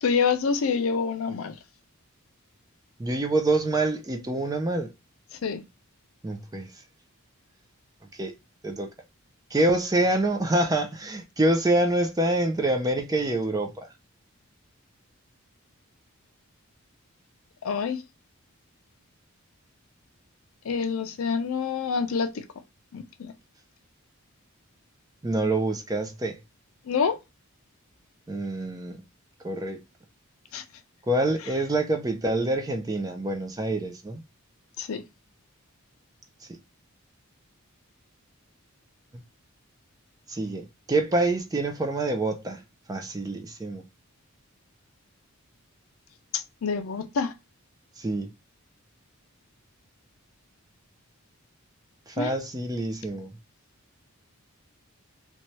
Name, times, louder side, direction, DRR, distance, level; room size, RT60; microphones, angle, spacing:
voice 1, 0.0-1.5 5.4-5.6 17.6-18.0 20.6-22.4 22.9-23.3 26.9-27.2 30.5-30.6 34.8-35.0 46.3-47.3 52.2-52.3, left 5 dB, 75° left, 0.5 m, -27 dB
voice 2, 3.0-4.9 6.2-6.8 8.2-8.3 8.6-8.9 9.5-13.9 25.2-26.4 28.3-29.0 29.4-29.8 31.1-34.2 36.5-36.6 40.3-42.6 42.9-43.9 48.0-48.3 52.1-53.3, right 2 dB, 15° right, 0.4 m, -26 dB
2.7 x 2.2 x 3.0 m
head